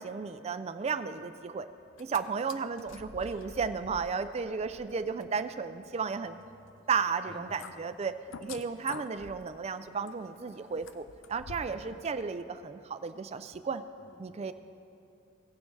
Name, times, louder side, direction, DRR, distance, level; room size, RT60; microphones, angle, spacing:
voice 1, 0.0-1.7 2.0-6.4 6.9-8.1 8.4-13.8 14.2-14.5, right 5 dB, 30° right, 11 dB, 0.4 m, -34 dB
sound 1, 1.8-2.2 2.5-11.9 12.2-12.3, left 5 dB, 65° left, 0.5 m, -49 dB
voice 2, 7.3-7.9 11.7-12.1 14.0-14.5, equal, 25° left, 1 dB, 0.9 m, -52 dB
17.0 x 9.4 x 3.3 m, 2.7 s
head